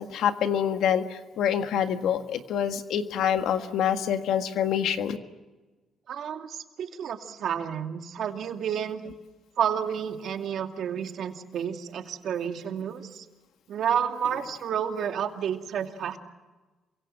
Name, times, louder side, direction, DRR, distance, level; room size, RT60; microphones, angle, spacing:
voice 1, 0.0-5.2, left 9 dB, 80° left, 8 dB, 1.7 m, -26 dB
voice 2, 6.1-9.0 9.6-13.3 13.7-16.2, right 8 dB, 70° right, 5 dB, 2.5 m, -30 dB
28.0 x 24.0 x 7.6 m, 1.2 s
cardioid pair, 90°, 0 cm